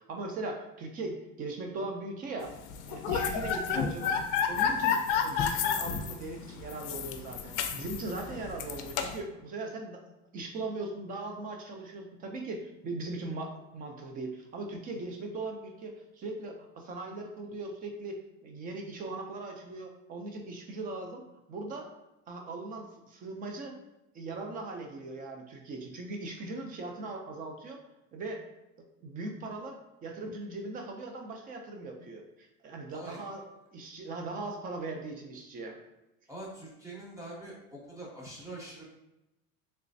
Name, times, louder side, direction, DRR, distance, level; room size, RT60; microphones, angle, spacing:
voice 1, 0.0-2.5 2.9-4.1 4.5-10.0 10.3-21.9 22.3-23.8 24.1-27.8 28.1-28.4 29.0-33.4 33.7-35.8, right 2 dB, 25° right, 3 dB, 0.4 m, -39 dB
sound 1, 2.7-9.2, left 7 dB, 60° left, 0.5 m, -30 dB
voice 2, 32.9-33.3 36.3-38.8, right 1 dB, 10° right, -3 dB, 0.7 m, -44 dB
3.2 x 2.9 x 2.6 m, 0.92 s
supercardioid pair, 140°, 37 cm